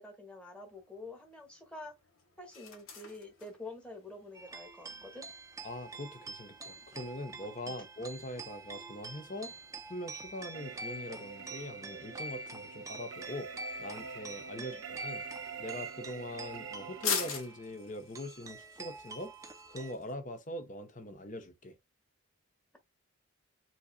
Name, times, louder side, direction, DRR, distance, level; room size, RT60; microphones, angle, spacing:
voice 1, 0.0-1.9 2.4-5.3 7.7-7.8 14.6-14.8, left 2 dB, 5° left, 1.4 m, -47 dB
sound 1, 0.6-20.1, left 6 dB, 75° left, 1.6 m, -46 dB
sound 2, 4.3-19.9, right 2 dB, 15° right, 0.5 m, -46 dB
voice 2, 5.6-13.5 13.8-15.2 15.6-19.3 19.7-21.7, left 1 dB, 35° left, 0.9 m, -42 dB
sound 3, 10.5-17.4, right 6 dB, 65° right, 0.5 m, -46 dB
7.5 x 2.8 x 2.2 m
head